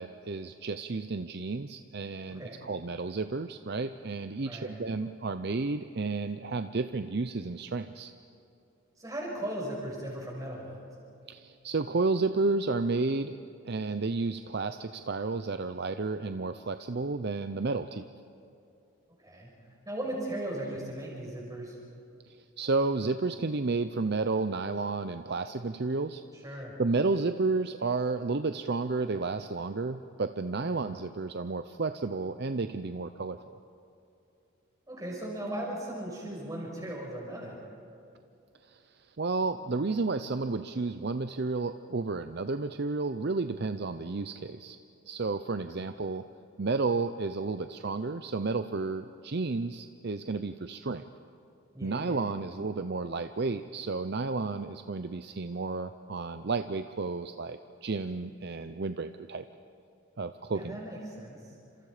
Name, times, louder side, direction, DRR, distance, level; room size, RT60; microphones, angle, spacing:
voice 1, 0.0-8.1 11.3-13.3 13.6-18.1 22.3-26.2 26.8-33.6 38.6-44.8 45.1-46.3 46.6-51.0 51.8-59.4 60.2-60.8, right 3 dB, 50° right, 9 dB, 0.6 m, -32 dB
voice 2, 2.3-2.6 4.4-4.8 9.0-10.9 19.2-19.5 19.8-21.8 26.4-26.7 30.6-30.8 34.9-37.6 51.7-52.2 60.5-61.5, right 1 dB, 15° right, -3 dB, 6.0 m, -37 dB
29.5 x 26.5 x 5.0 m, 2.6 s
head